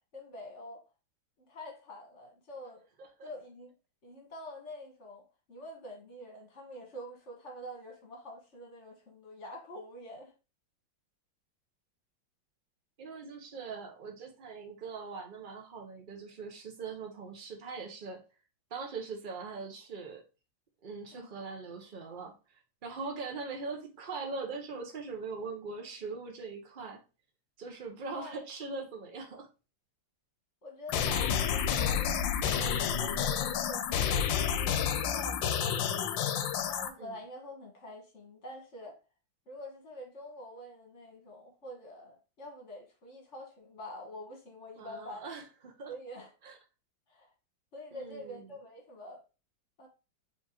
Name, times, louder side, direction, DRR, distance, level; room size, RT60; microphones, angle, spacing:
voice 1, 0.1-0.8 1.5-2.9 3.2-3.7 4.0-10.3 21.1-21.3 28.1-28.4 30.6-32.1 32.5-36.2 36.6-38.9 39.5-45.3 45.9-46.3 47.1-47.3 47.7-49.2 49.8-49.9, left 1 dB, 40° left, 1.6 m, -46 dB
voice 2, 13.0-18.2 18.7-20.2 20.8-22.3 22.8-27.0 27.6-29.5 37.0-37.2 44.8-45.9 46.4-46.6 47.9-48.5, right 4 dB, 65° right, 0.5 m, -41 dB
sound 1, 30.9-36.9, left 8 dB, 80° left, 1.3 m, -30 dB
4.6 x 3.6 x 2.9 m
omnidirectional pair, 2.1 m